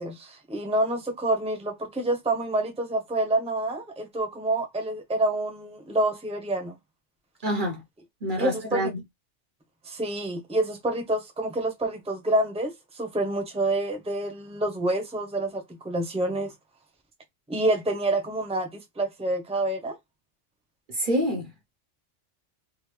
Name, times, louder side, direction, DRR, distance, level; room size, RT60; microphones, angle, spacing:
voice 1, 0.0-6.7 8.4-8.9 9.8-16.5 17.5-20.0, right 1 dB, 5° right, 0.9 m, -27 dB
voice 2, 7.4-7.8 8.2-9.0 20.9-21.5, equal, 45° right, 1.1 m, -27 dB
3.7 x 2.5 x 3.3 m
omnidirectional pair, 1.2 m